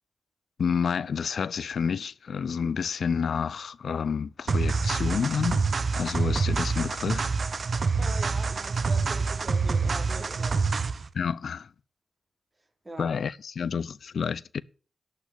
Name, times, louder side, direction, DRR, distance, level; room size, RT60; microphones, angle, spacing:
voice 1, 0.6-5.6 5.9-7.3 11.1-11.7 13.0-14.6, left 6 dB, 80° left, 0.5 m, -29 dB
sound 1, 4.5-11.1, right 4 dB, 65° right, 0.8 m, -26 dB
voice 2, 8.0-10.7 12.8-13.1, right 1 dB, 30° right, 3.1 m, -41 dB
11.5 x 6.2 x 8.2 m
cardioid pair, 60°, 0 cm